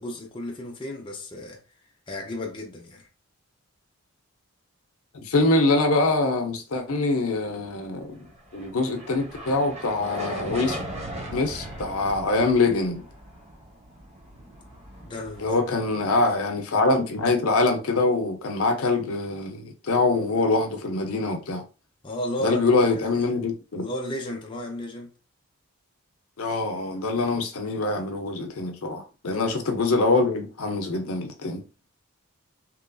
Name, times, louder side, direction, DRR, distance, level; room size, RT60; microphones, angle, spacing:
voice 1, 0.0-1.6 2.1-3.1 15.0-15.9 22.0-23.2 23.7-25.1 29.3-29.6, equal, 20° left, 0.5 m, -34 dB
voice 2, 5.1-8.2 8.5-10.8 11.3-13.0 15.4-21.6 22.4-23.9 26.4-31.6, left 3 dB, 75° left, 0.6 m, -24 dB
sound 1, 8.2-16.7, right 1 dB, 30° right, 0.7 m, -39 dB
2.9 x 2.5 x 2.3 m
head